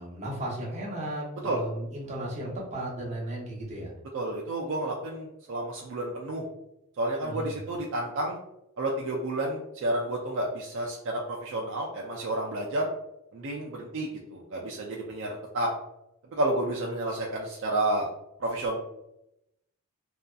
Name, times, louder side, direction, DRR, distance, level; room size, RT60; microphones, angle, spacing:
voice 1, 0.0-3.9 7.2-7.5, right 1 dB, 30° right, -4 dB, 0.7 m, -35 dB
voice 2, 4.1-6.4 7.0-8.4 8.8-12.9 13.3-15.7 16.3-18.1 18.4-18.8, right 1 dB, 60° right, -2 dB, 0.4 m, -30 dB
2.6 x 2.3 x 2.2 m, 0.84 s
head